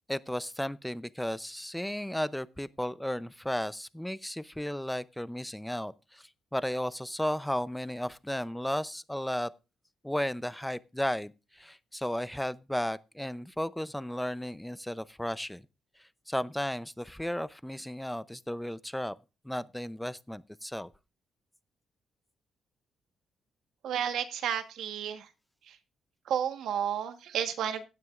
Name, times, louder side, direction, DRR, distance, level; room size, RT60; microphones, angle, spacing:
voice 1, 0.1-9.5 10.0-15.6 16.0-19.2 19.4-20.9, equal, 5° left, 0.6 m, -34 dB
voice 2, 23.8-25.3 25.7-25.8 26.3-27.9, right 9 dB, 80° right, 1.3 m, -32 dB
16.0 x 9.5 x 2.5 m
cardioid pair, 90°, 0 cm